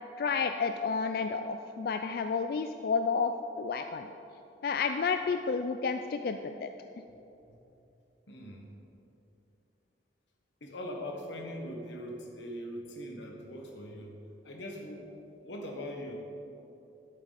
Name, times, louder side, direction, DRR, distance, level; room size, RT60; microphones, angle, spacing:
voice 1, 0.2-3.3 3.6-4.1 4.6-6.7, left 5 dB, 55° left, 7 dB, 0.3 m, -31 dB
voice 2, 8.3-8.6 10.6-14.1 14.4-15.1 15.4-16.2, equal, 90° left, 1 dB, 1.4 m, -41 dB
11.0 x 8.3 x 4.1 m, 2.9 s
head